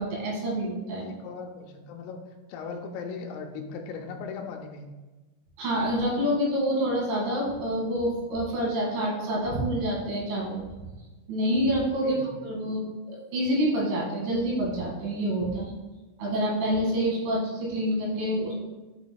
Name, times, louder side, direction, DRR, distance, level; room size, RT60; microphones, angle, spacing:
voice 1, 0.0-1.1 5.6-10.6 11.3-15.7 16.2-18.5, equal, 70° right, -4 dB, 4.2 m, -27 dB
voice 2, 1.0-2.2 2.5-4.9 12.0-12.3, left 5 dB, 85° left, 3 dB, 3.2 m, -38 dB
11.5 x 6.1 x 2.2 m, 1.2 s
omnidirectional pair, 5.9 m